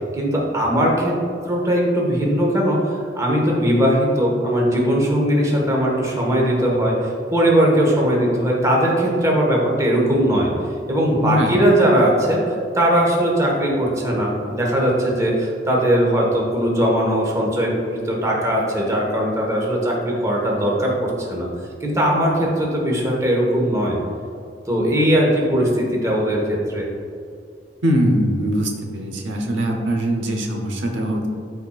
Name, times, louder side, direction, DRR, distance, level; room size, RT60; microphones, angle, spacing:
voice 1, 0.1-1.2 1.5-10.5 10.9-12.4 12.7-21.5 21.8-24.0 24.7-26.9, equal, 15° right, -2 dB, 1.3 m, -19 dB
voice 2, 11.2-11.6 27.8-31.3, equal, 85° right, 2 dB, 0.9 m, -22 dB
13.0 x 4.4 x 2.4 m, 2.4 s
head